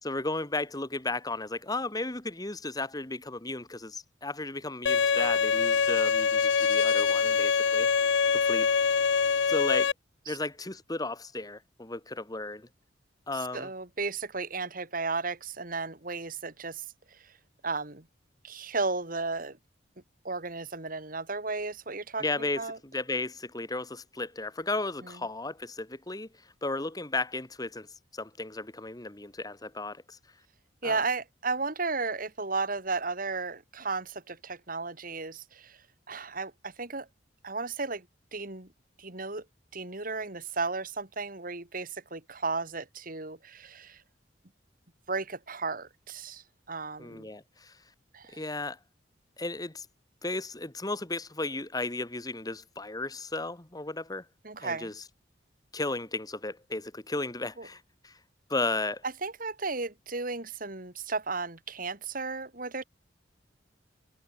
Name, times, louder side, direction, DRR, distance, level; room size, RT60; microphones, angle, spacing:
voice 1, 0.0-7.9 8.3-8.7 9.5-9.9 10.3-12.7 13.3-13.7 22.2-26.3 26.6-27.9 28.1-30.2 30.8-31.0 47.0-47.8 48.3-48.8 49.4-49.9 50.2-54.2 54.6-55.0 55.7-58.2 58.5-59.0, left 2 dB, 20° left, 1.7 m, -34 dB
Bowed string instrument, 4.9-9.9, left 6 dB, 80° left, 0.6 m, -24 dB
voice 2, 13.5-16.8 17.1-17.3 17.6-18.1 18.4-19.6 20.2-22.2 22.6-22.8 25.0-25.1 30.8-35.8 36.1-37.1 37.4-38.1 38.3-38.7 39.0-39.4 39.7-44.0 45.1-47.3 48.1-48.4 54.4-54.9 57.6-57.7 59.2-62.8, right 3 dB, 50° right, 3.1 m, -34 dB
head